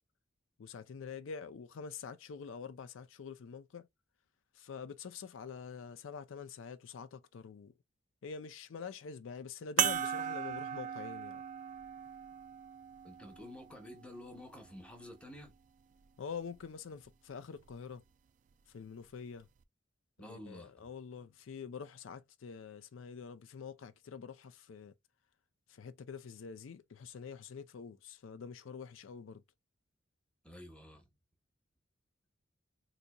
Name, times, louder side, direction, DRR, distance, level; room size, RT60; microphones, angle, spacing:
voice 1, 0.6-3.9 4.5-7.7 8.2-11.4 16.2-18.0 18.7-19.5 20.2-24.9 25.7-29.4, left 6 dB, 75° left, 0.4 m, -46 dB
sound 1, 9.8-14.6 15.4-15.5 17.6-17.7, right 9 dB, 40° right, 0.3 m, -37 dB
voice 2, 13.0-15.5 20.2-20.8 30.4-31.0, left 1 dB, 5° left, 0.9 m, -50 dB
4.0 x 2.7 x 2.3 m
head